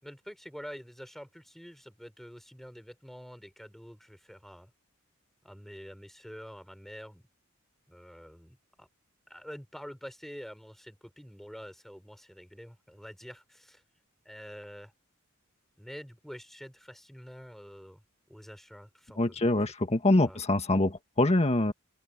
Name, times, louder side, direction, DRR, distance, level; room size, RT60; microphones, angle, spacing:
voice 1, 0.0-4.7 5.4-7.3 7.9-8.9 9.3-13.8 14.2-14.9 15.8-18.0 18.3-19.5 20.2-20.4, equal, ahead, 4.9 m, -47 dB
voice 2, 19.2-21.7, left 2 dB, 30° left, 1.8 m, -25 dB
open air
head